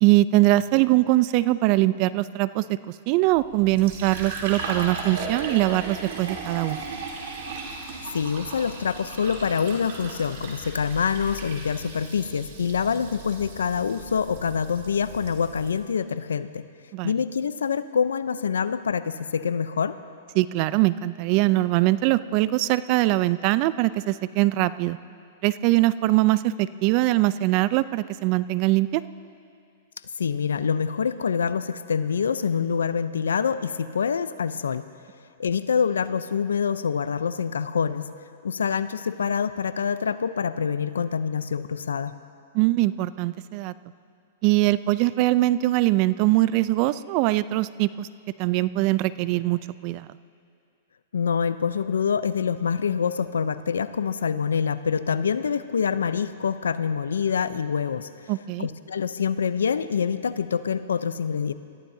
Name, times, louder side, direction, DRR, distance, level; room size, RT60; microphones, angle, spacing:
voice 1, 0.0-2.8 3.1-6.8 16.9-17.1 20.4-25.0 25.4-29.0 42.5-43.7 44.4-48.1 48.4-50.1 58.3-58.7, right 17 dB, 45° right, 16 dB, 0.5 m, -22 dB
Fill (with liquid), 3.3-15.8, right 3 dB, 60° right, 3.3 m, -37 dB
voice 2, 8.1-16.7 17.0-20.0 30.2-34.9 35.4-38.1 38.4-42.2 51.1-58.3 58.6-61.5, left 6 dB, 85° left, 13 dB, 0.6 m, -26 dB
26.5 x 14.0 x 2.8 m, 2.3 s
hypercardioid pair, 125°, 0 cm